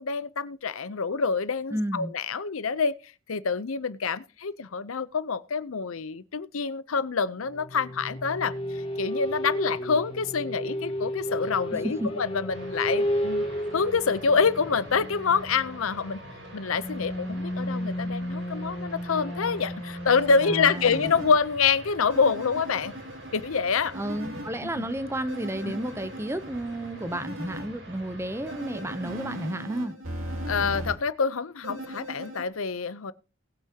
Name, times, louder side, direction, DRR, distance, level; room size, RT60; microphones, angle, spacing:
voice 1, 0.0-3.0 3.3-8.5 9.0-13.4 13.7-16.2 16.5-22.9 23.3-23.9 24.6-24.8 25.6-25.7 30.5-33.1, left 5 dB, 80° left, 0.7 m, -26 dB
voice 2, 1.7-2.1 12.0-12.1 20.4-21.1 23.9-29.9, right 1 dB, 10° right, 0.6 m, -32 dB
sound 1, 7.4-22.1, equal, 25° left, 2.4 m, -33 dB
sound 2, 12.5-29.5, right 1 dB, 60° right, 4.9 m, -46 dB
sound 3, 20.3-21.3 22.1-24.5 25.3-27.7 28.5-30.9 31.6-32.4, equal, 75° right, 2.6 m, -38 dB
19.5 x 8.5 x 2.8 m
head